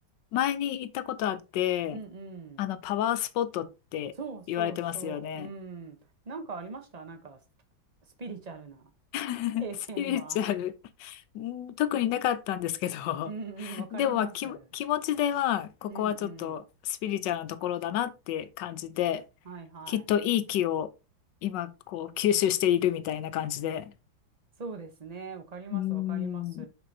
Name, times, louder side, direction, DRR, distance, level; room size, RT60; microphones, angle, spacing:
voice 1, 0.3-2.0 2.6-4.1 4.5-5.5 9.1-9.6 10.0-10.7 11.0-13.3 13.6-19.2 19.9-20.9 21.4-23.9 25.7-26.7, left 11 dB, 70° left, 1.2 m, -29 dB
voice 2, 1.9-2.7 4.2-6.0 6.2-7.4 8.2-8.9 9.6-10.4 13.2-14.6 15.9-16.6 19.4-20.0 24.6-26.7, right 4 dB, 40° right, 0.5 m, -41 dB
6.7 x 6.2 x 2.7 m
omnidirectional pair, 2.1 m